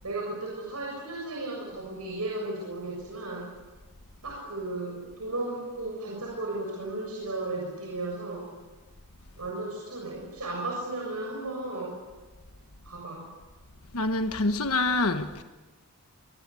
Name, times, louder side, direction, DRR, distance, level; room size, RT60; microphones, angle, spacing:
voice 1, 0.0-3.5 4.2-8.5 9.4-12.0 12.9-13.3, right 2 dB, 85° right, -2 dB, 7.1 m, -35 dB
voice 2, 13.9-15.4, left 2 dB, 75° left, 7 dB, 1.4 m, -26 dB
25.5 x 24.5 x 8.5 m, 1.2 s
head